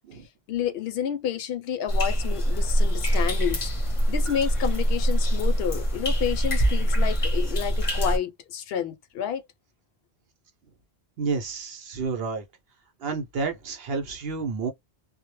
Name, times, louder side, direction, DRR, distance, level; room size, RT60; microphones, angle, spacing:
voice 1, 0.5-3.7 4.1-9.4, left 9 dB, 75° left, 0.8 m, -30 dB
sound 1, 1.9-8.2, equal, 35° left, 0.6 m, -24 dB
voice 2, 11.2-12.4 13.0-14.7, right 4 dB, 70° right, 0.8 m, -30 dB
2.1 x 2.0 x 3.0 m
omnidirectional pair, 1.1 m